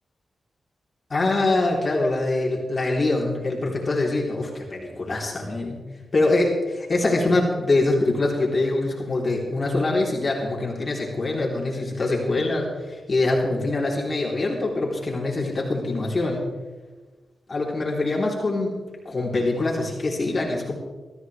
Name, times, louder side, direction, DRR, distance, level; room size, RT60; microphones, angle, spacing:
voice 1, 1.1-5.8 6.1-16.5 17.5-18.7 19.0-20.7, left 2 dB, 40° left, -2 dB, 3.4 m, -24 dB
22.0 x 14.0 x 3.3 m, 1.3 s
cardioid pair, 80°, 0 cm